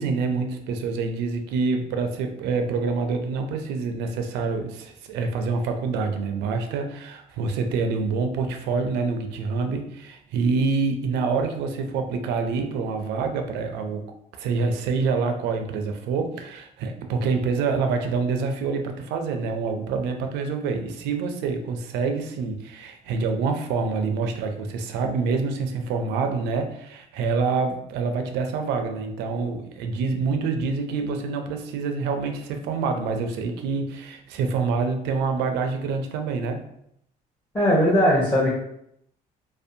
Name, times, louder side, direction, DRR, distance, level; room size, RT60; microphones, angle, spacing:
voice 1, 0.0-14.0 14.4-36.6, right 4 dB, 90° right, 5 dB, 0.4 m, -26 dB
voice 2, 37.5-38.5, equal, 15° left, -6 dB, 0.7 m, -19 dB
2.6 x 2.1 x 2.6 m, 0.74 s
cardioid pair, 110°, 17 cm